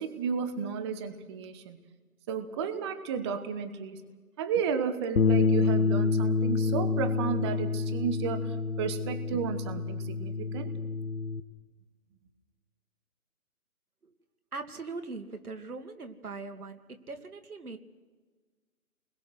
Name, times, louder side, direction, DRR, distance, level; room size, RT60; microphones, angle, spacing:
voice 1, 0.0-1.8 2.3-4.0 4.4-10.7, right 6 dB, 20° right, 10 dB, 1.1 m, -33 dB
Bass guitar, 5.2-11.4, left 4 dB, 85° left, 1.5 m, -28 dB
voice 2, 14.5-17.8, right 3 dB, 85° right, 7 dB, 2.5 m, -41 dB
30.0 x 21.0 x 6.3 m, 1.4 s
hypercardioid pair, 155°, 43 cm